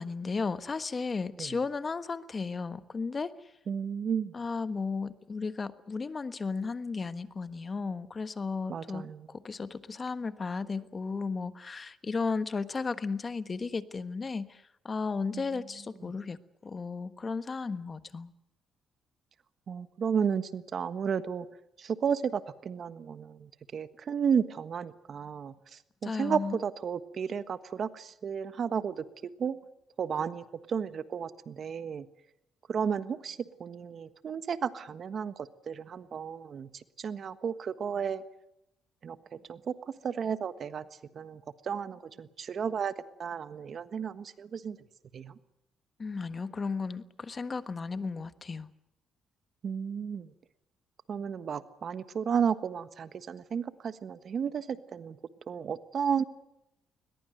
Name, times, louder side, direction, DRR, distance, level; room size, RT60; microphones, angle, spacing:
voice 1, 0.0-3.5 4.3-18.3 26.0-26.6 46.0-48.7, left 4 dB, 35° left, 13 dB, 1.3 m, -34 dB
voice 2, 3.7-4.3 8.7-9.3 15.3-15.4 19.7-21.5 21.8-29.0 29.4-29.6 30.0-32.0 32.7-36.7 37.0-38.2 39.0-39.2 39.5-40.8 41.1-42.9 43.2-44.8 45.1-45.3 49.6-50.3 51.1-55.2 55.5-56.2, right 7 dB, 55° right, 13 dB, 1.4 m, -33 dB
21.0 x 21.0 x 7.9 m, 0.85 s
cardioid pair, 90°, 0 cm